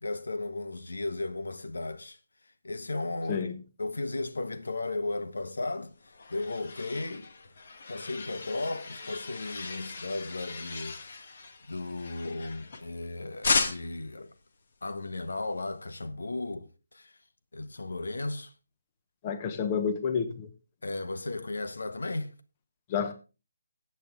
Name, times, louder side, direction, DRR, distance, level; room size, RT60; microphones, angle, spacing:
voice 1, 0.0-2.2 2.6-3.5 3.8-7.3 7.9-11.0 11.6-14.3 14.8-17.1 17.5-18.5 20.8-22.3, left 2 dB, 90° left, 1.3 m, -35 dB
sound 1, 5.7-13.0 13.4-14.1, left 4 dB, 50° left, 1.5 m, -35 dB
voice 2, 19.2-20.5 22.9-23.1, left 6 dB, 20° left, 1.1 m, -29 dB
14.0 x 8.3 x 3.7 m
hypercardioid pair, 170°, 0 cm